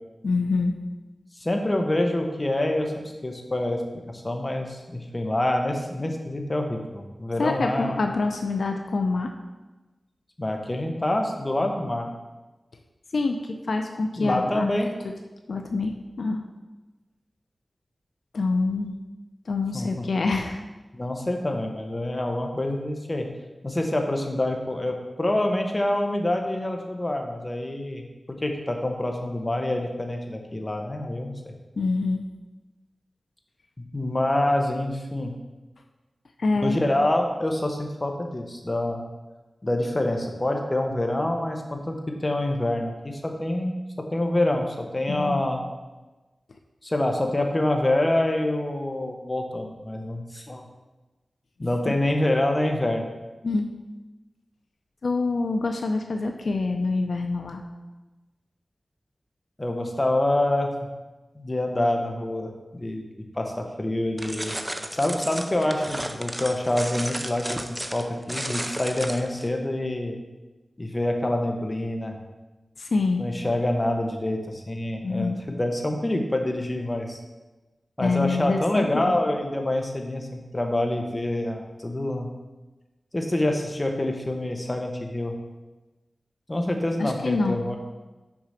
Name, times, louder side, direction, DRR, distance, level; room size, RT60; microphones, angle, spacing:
voice 1, 0.2-0.7 7.4-9.3 13.1-13.4 13.7-14.7 15.5-16.4 18.3-18.9 19.5-20.6 31.8-32.2 36.4-36.8 45.1-45.4 53.4-53.7 55.0-57.6 72.8-73.3 75.0-75.4 78.0-79.2 87.0-87.6, left 3 dB, 80° left, 5 dB, 0.5 m, -26 dB
voice 2, 1.4-2.9 3.2-3.8 4.1-8.0 10.4-12.1 14.2-14.9 19.7-20.1 20.9-23.2 23.6-28.0 28.4-31.5 33.9-35.3 36.6-39.0 39.6-41.9 42.2-43.7 44.1-45.6 46.8-50.6 51.6-53.1 59.6-60.7 61.4-63.0 63.3-67.7 67.9-70.2 70.8-72.1 73.2-77.2 78.0-82.3 83.1-85.3 86.5-87.8, left 1 dB, 25° left, 3 dB, 1.1 m, -26 dB
sound 1, 64.2-69.5, right 1 dB, 15° right, 0.6 m, -33 dB
6.2 x 4.9 x 5.7 m, 1.1 s
wide cardioid pair, 85°, 0 cm